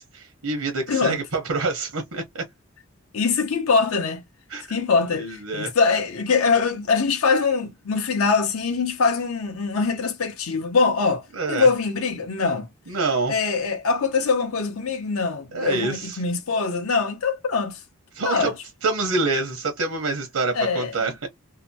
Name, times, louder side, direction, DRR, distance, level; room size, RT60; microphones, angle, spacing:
voice 1, 0.0-2.4 4.5-4.7 5.1-5.7 11.4-11.7 12.9-13.3 15.5-16.2 18.2-18.5 18.8-21.3, right 3 dB, 85° right, 0.8 m, -26 dB
voice 2, 0.9-1.2 3.1-4.2 4.7-12.7 13.3-17.8 18.2-18.5 20.5-21.0, left 4 dB, 80° left, 0.7 m, -23 dB
2.8 x 2.1 x 2.6 m
head